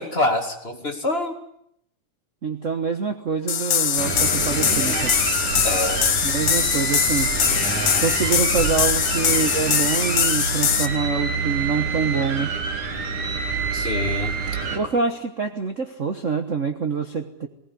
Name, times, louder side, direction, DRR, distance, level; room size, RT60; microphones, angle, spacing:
voice 1, 0.0-1.4 5.6-6.0 13.7-14.3, left 2 dB, 20° left, 4 dB, 2.2 m, -25 dB
voice 2, 2.4-5.1 6.2-7.4 8.0-12.6 14.7-17.5, right 5 dB, 60° right, 6 dB, 0.8 m, -25 dB
sound 1, 3.5-10.9, left 8 dB, 55° left, 1.4 m, -22 dB
sound 2, 4.0-14.8, right 4 dB, 85° right, 4.1 m, -27 dB
19.5 x 19.0 x 9.8 m, 0.72 s
omnidirectional pair, 3.4 m